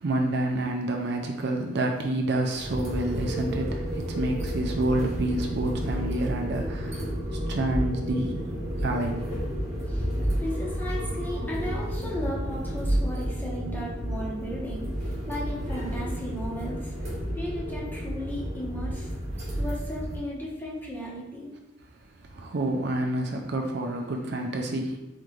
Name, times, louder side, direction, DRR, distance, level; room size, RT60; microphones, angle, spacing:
voice 1, 0.0-8.5 8.8-9.4 22.3-25.0, right 1 dB, 55° right, 2 dB, 0.4 m, -28 dB
sound 1, 2.5-20.2, equal, 35° right, 1.2 m, -31 dB
voice 2, 10.4-19.1 19.6-21.5, equal, 10° left, -5 dB, 1.0 m, -35 dB
4.3 x 3.2 x 3.8 m, 0.98 s
head